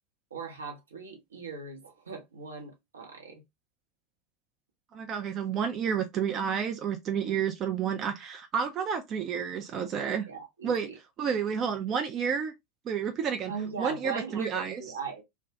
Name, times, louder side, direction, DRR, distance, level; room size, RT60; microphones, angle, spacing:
voice 1, 0.3-3.4 10.3-11.0 13.5-15.2, right 5 dB, 75° right, 0.8 m, -39 dB
voice 2, 4.9-10.3 10.6-10.9 11.2-12.5 12.9-13.5 13.8-14.8, right 7 dB, 35° right, 0.4 m, -30 dB
2.2 x 2.1 x 2.6 m
figure-of-eight pair, 80°, 0 cm